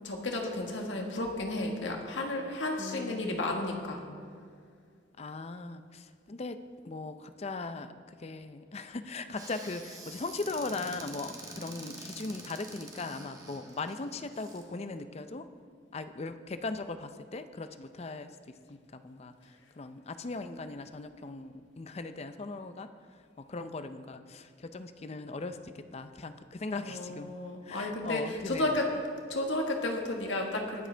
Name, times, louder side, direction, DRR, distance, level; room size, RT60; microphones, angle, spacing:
voice 1, 0.0-4.1 26.7-28.8 29.3-30.9, left 2 dB, 80° left, 1 dB, 1.5 m, -33 dB
voice 2, 2.8-3.5 5.2-6.6 6.8-15.5 15.9-18.4 18.7-22.9 23.4-27.3 27.6-28.8, left 3 dB, 35° left, 10 dB, 0.5 m, -39 dB
Squeak / Cupboard open or close, 9.4-14.6, right 2 dB, 20° right, 1.3 m, -47 dB
20.0 x 7.7 x 3.3 m, 2.2 s
head